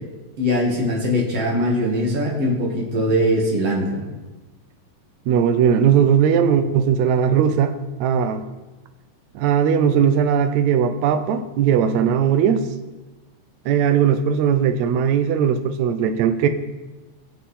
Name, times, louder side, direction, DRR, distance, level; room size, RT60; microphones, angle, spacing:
voice 1, 0.4-4.1, equal, 45° right, -3 dB, 3.1 m, -21 dB
voice 2, 5.3-7.7 8.0-8.4 9.3-12.6 13.6-16.5, right 8 dB, 75° right, 8 dB, 1.7 m, -18 dB
20.0 x 7.2 x 4.3 m, 1.1 s
omnidirectional pair, 4.1 m